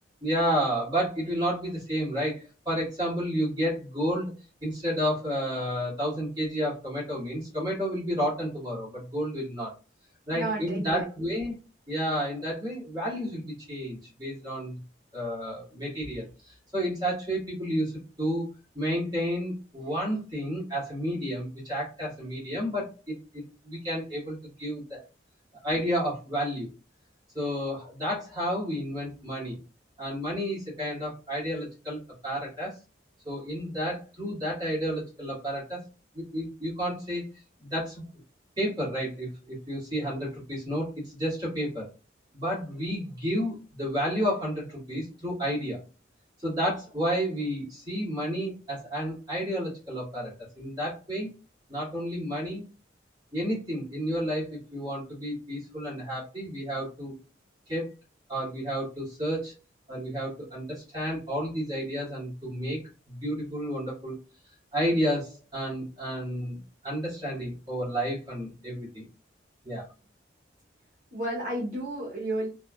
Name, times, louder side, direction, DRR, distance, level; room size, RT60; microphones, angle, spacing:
voice 1, 0.2-4.3 4.6-9.7 10.3-11.5 11.9-14.7 15.1-16.2 16.7-18.4 18.7-25.0 25.6-26.7 27.3-29.6 30.0-32.7 33.2-35.8 36.1-37.3 37.6-38.0 38.6-41.9 42.3-45.8 46.4-51.3 51.7-52.6 53.3-57.1 57.7-57.9 58.3-59.5 59.9-62.8 63.1-64.2 64.7-69.0 69.6-69.8, equal, 20° right, -6 dB, 1.6 m, -31 dB
voice 2, 10.3-11.3 71.1-72.5, right 1 dB, 45° right, -6 dB, 0.9 m, -32 dB
3.4 x 2.3 x 2.3 m, 0.33 s
head